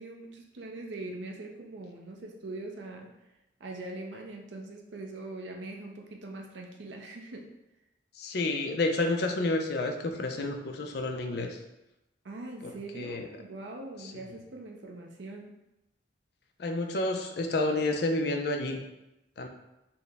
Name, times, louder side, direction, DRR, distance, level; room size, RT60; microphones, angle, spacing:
voice 1, 0.0-3.1 3.6-7.5 12.2-15.5, right 2 dB, 70° right, 2 dB, 0.5 m, -42 dB
voice 2, 8.2-11.6 12.6-13.2 16.6-18.8 19.4-19.5, left 2 dB, 55° left, 4 dB, 0.4 m, -30 dB
4.5 x 2.1 x 3.3 m, 0.92 s
head